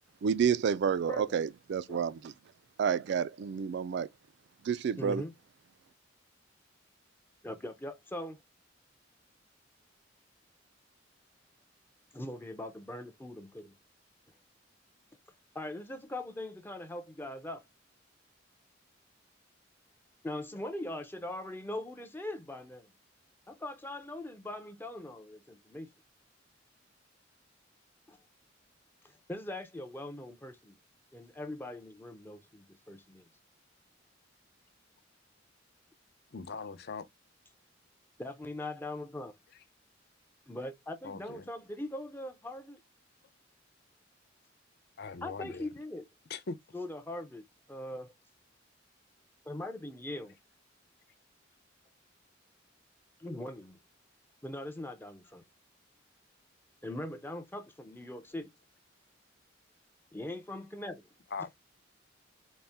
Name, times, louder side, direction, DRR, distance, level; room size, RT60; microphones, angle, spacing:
voice 1, 0.2-2.3 2.8-4.1 4.7-5.2, right 7 dB, 60° right, 0.3 m, -29 dB
voice 2, 5.0-5.3 7.4-8.4 12.1-13.7 15.5-17.6 20.2-22.9 23.5-25.9 28.1-28.2 29.0-30.7 31.1-33.3 38.2-39.4 40.5-42.8 45.2-46.0 46.7-48.1 49.4-50.3 53.2-53.8 54.4-55.4 56.8-58.5 60.1-61.1, left 1 dB, 10° left, 0.5 m, -41 dB
voice 3, 36.3-37.1 41.0-41.5 45.0-45.7 46.3-46.6 61.3-61.5, left 4 dB, 55° left, 0.6 m, -40 dB
4.1 x 2.1 x 3.4 m
head